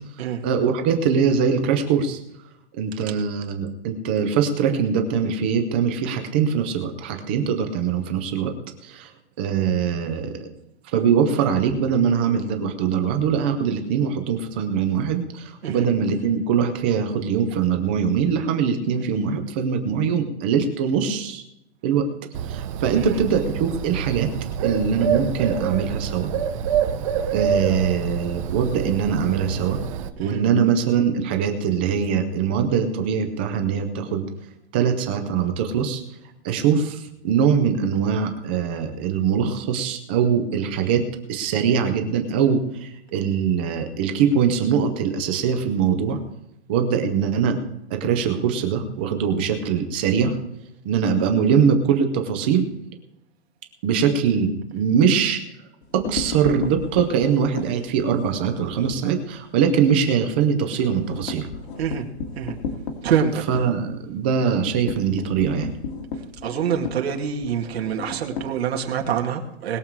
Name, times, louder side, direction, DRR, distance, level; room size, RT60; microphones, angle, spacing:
voice 1, 0.4-2.2 2.8-8.5 8.8-9.1 9.4-10.5 10.9-21.4 21.8-22.1 22.5-24.3 24.6-26.3 27.3-29.8 30.2-34.2 34.7-36.0 36.4-46.2 46.7-47.6 47.9-50.3 50.8-52.7 53.8-55.4 55.9-61.5 63.5-65.7, right 7 dB, 10° right, 6 dB, 0.4 m, -22 dB
Bird, 22.3-30.1, right 8 dB, 30° right, 0.8 m, -27 dB
sound 1, 55.8-59.0 59.4-59.6 59.9-60.0 60.3-69.2, left 5 dB, 50° left, 2.3 m, -34 dB
voice 2, 63.0-63.6 66.4-69.8, right 8 dB, 60° right, 3 dB, 2.4 m, -25 dB
20.5 x 7.1 x 4.7 m, 0.81 s
hypercardioid pair, 170°, 34 cm